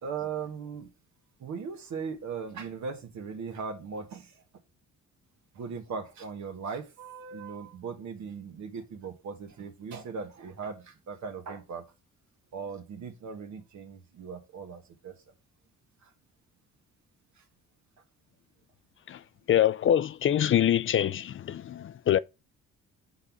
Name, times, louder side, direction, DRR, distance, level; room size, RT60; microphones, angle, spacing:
voice 1, 0.0-0.9 1.4-4.4 5.5-11.9 12.5-15.2 16.0-16.1, right 5 dB, 65° right, 1.4 m, -38 dB
voice 2, 19.5-22.2, left 10 dB, 45° left, 0.4 m, -25 dB
5.5 x 4.1 x 5.9 m
cardioid pair, 90°, 30 cm